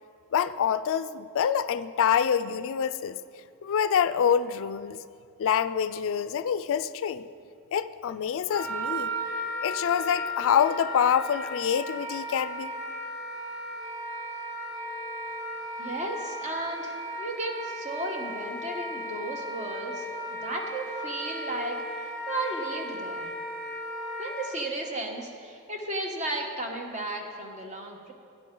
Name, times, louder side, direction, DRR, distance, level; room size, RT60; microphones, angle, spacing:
voice 1, 0.3-3.2 3.6-5.0 5.4-7.3 7.7-9.1 9.6-12.7, left 8 dB, 60° left, 14 dB, 0.4 m, -26 dB
Wind instrument woodwind instrument, 8.5-24.6, equal, 10° left, 1.9 m, -35 dB
voice 2, 15.8-21.8 22.3-23.3 24.2-28.1, right 1 dB, 35° right, 2 dB, 1.2 m, -34 dB
12.5 x 10.0 x 3.8 m, 2.4 s
head